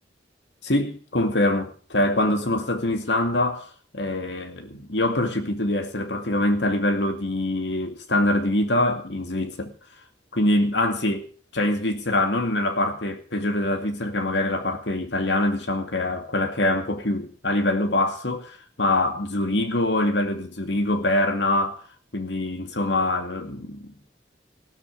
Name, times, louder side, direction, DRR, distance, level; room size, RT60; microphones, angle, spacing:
voice 1, 0.6-3.7 3.9-9.7 10.3-11.3 11.5-21.8 22.1-23.9, left 1 dB, 80° left, 2.4 m, -24 dB
15.5 x 13.0 x 5.1 m
head